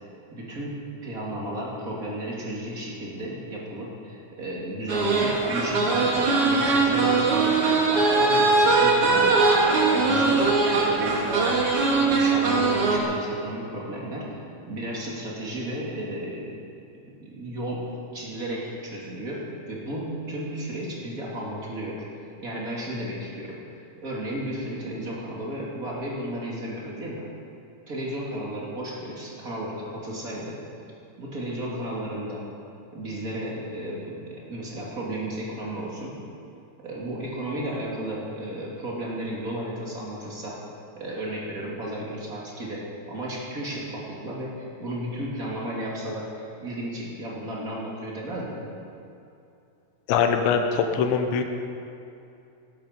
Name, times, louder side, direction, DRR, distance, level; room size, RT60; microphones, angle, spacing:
voice 1, 0.3-7.6 7.9-9.6 9.9-10.4 10.7-14.3 14.7-16.6 17.0-22.0 22.4-27.3 27.9-30.6 31.2-32.5 32.9-36.2 36.8-40.6 40.9-48.8, right 1 dB, 30° right, -4 dB, 1.8 m, -34 dB
sound 1, 4.9-13.0, right 3 dB, 80° right, 1.3 m, -21 dB
voice 2, 50.1-51.4, left 6 dB, 80° left, 6 dB, 3.0 m, -22 dB
17.5 x 12.5 x 5.2 m, 2.7 s
omnidirectional pair, 5.6 m